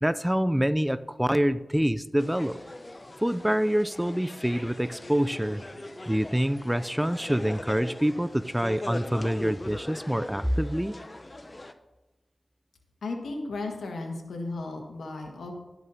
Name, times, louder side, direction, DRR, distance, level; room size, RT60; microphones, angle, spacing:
voice 1, 0.0-2.6 3.2-5.6 6.1-11.0, equal, 5° right, 14 dB, 0.4 m, -26 dB
sound 1, 2.2-11.7, left 1 dB, 30° left, 0.7 m, -41 dB
voice 2, 13.0-15.5, left 3 dB, 90° left, 2 dB, 1.5 m, -35 dB
12.5 x 11.0 x 2.8 m, 1.1 s
cardioid pair, 45°, 0 cm